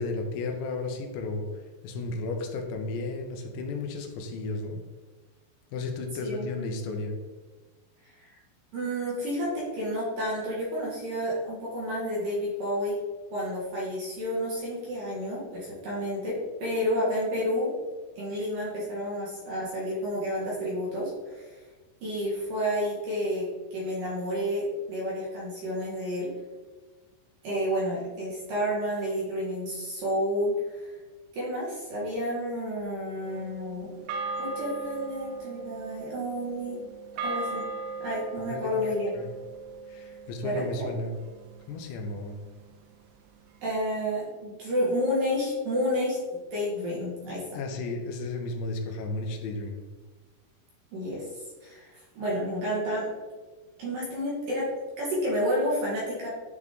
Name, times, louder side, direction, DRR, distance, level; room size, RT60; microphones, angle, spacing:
voice 1, 0.0-1.5 1.8-4.8 5.7-7.2 38.4-39.3 39.9-41.1 41.7-42.4 47.5-49.8, left 3 dB, 85° left, 3 dB, 3.0 m, -33 dB
voice 2, 6.2-6.9 8.1-8.4 8.7-13.0 13.3-17.7 18.2-21.6 22.0-26.3 27.4-30.9 31.3-33.9 34.4-36.8 37.2-37.6 38.0-39.1 40.4-40.9 43.6-47.4 50.9-51.9 52.2-53.1 53.8-54.7 55.0-56.3, equal, 60° right, -6 dB, 2.5 m, -30 dB
sound 1, 33.2-41.7, right 4 dB, 85° right, 2.2 m, -38 dB
9.5 x 3.6 x 3.6 m, 1.3 s
omnidirectional pair, 5.2 m